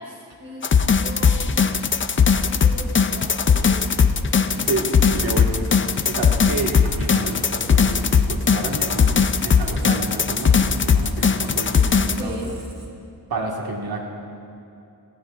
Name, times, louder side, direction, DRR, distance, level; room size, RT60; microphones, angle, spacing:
voice 1, 0.0-1.6 2.4-4.1 4.4-5.4 6.1-6.3 12.1-12.5, equal, 30° right, -3 dB, 3.1 m, -38 dB
sound 1, 0.6-12.2, left 6 dB, 35° left, 0.4 m, -19 dB
voice 2, 4.5-4.9 5.1-5.5 6.1-12.4 13.3-14.0, right 2 dB, 75° right, 0 dB, 1.7 m, -30 dB
Squeak, 5.3-13.2, right 1 dB, 45° right, 1.7 m, -40 dB
17.5 x 16.0 x 2.4 m, 2.7 s
wide cardioid pair, 135°, 37 cm